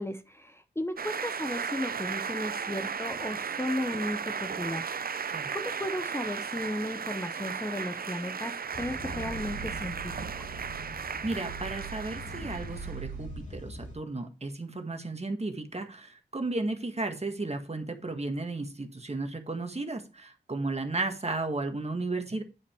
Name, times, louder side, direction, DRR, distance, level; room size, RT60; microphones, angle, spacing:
voice 1, 0.0-4.9 5.5-10.5, left 1 dB, 15° left, 9 dB, 0.8 m, -35 dB
sound 1, 1.0-13.1, right 6 dB, 60° right, 0.6 m, -35 dB
sound 2, 8.7-13.9, right 2 dB, 45° left, 2.3 m, -41 dB
voice 2, 11.2-22.4, right 2 dB, 35° right, 6 dB, 1.7 m, -34 dB
9.6 x 5.1 x 4.5 m, 0.32 s
cardioid pair, 45°, 18 cm